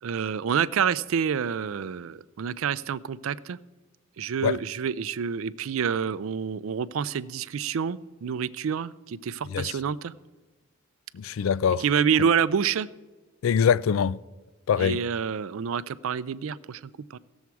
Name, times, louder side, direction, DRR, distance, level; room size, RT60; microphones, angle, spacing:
voice 1, 0.0-3.6 4.2-10.1 11.8-12.9 14.8-17.2, right 7 dB, 75° right, 0.4 m, -28 dB
voice 2, 11.1-11.8 13.4-14.2 14.7-15.0, left 7 dB, 70° left, 0.3 m, -23 dB
17.0 x 7.2 x 4.7 m
head